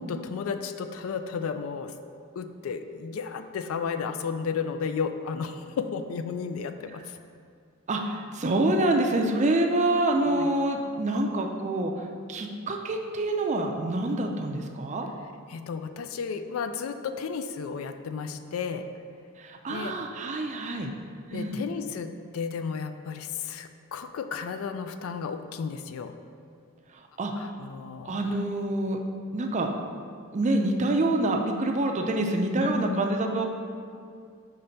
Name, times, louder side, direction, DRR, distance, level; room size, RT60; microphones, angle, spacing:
voice 1, 0.0-1.9 2.4-7.2 10.3-10.5 15.5-18.9 19.7-20.0 21.3-26.1 27.4-28.4 32.6-33.1, left 6 dB, 70° left, 9 dB, 0.3 m, -33 dB
voice 2, 7.9-11.9 12.3-15.1 19.4-20.9 21.3-21.6 27.2-27.3 28.0-29.0 29.3-29.7 30.3-33.5, right 2 dB, 35° right, 3 dB, 0.4 m, -26 dB
5.7 x 3.3 x 5.2 m, 2.3 s
head